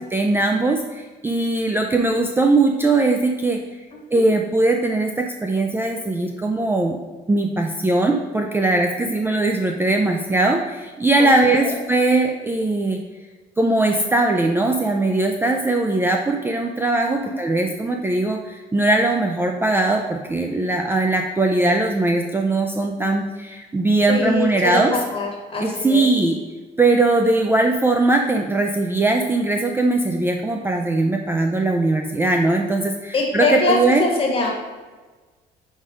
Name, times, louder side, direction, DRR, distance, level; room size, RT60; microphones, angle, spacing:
voice 1, 0.1-0.8 1.2-3.6 4.1-7.0 7.3-10.6 11.0-13.0 13.6-18.4 18.7-23.2 23.7-24.9 25.6-26.3 26.8-32.9 33.3-34.0, right 2 dB, 15° right, 3 dB, 0.4 m, -20 dB
voice 2, 3.9-4.2 11.2-11.3 11.6-11.7 17.2-17.6 24.1-26.1 33.1-34.5, left 2 dB, 35° left, -1 dB, 1.6 m, -23 dB
5.0 x 4.2 x 4.9 m, 1.3 s
cardioid pair, 110°, 17 cm